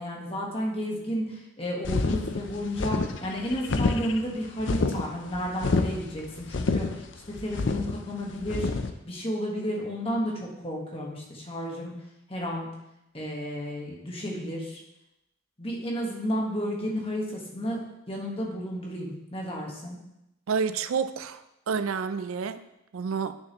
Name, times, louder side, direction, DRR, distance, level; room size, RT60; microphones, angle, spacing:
voice 1, 0.0-8.7 9.0-11.9 12.3-12.7 13.1-14.8 15.6-17.8 18.1-20.0, equal, 30° left, -1 dB, 1.4 m, -32 dB
sound 1, 1.8-8.9, left 3 dB, 65° left, 0.5 m, -28 dB
voice 2, 20.5-23.4, right 6 dB, 90° right, 12 dB, 0.4 m, -30 dB
8.9 x 6.8 x 3.0 m, 0.88 s
head